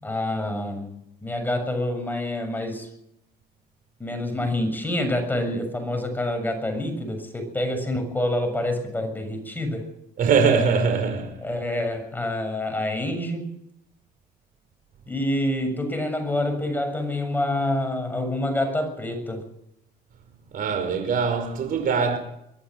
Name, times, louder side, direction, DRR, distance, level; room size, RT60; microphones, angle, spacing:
voice 1, 0.0-2.9 4.0-9.9 11.4-13.5 15.1-19.5, left 1 dB, 10° left, 7.1 m, -27 dB
voice 2, 10.2-11.4 20.5-22.2, right 5 dB, 55° right, 5.2 m, -22 dB
23.5 x 14.5 x 7.8 m
cardioid pair, 110°, 17 cm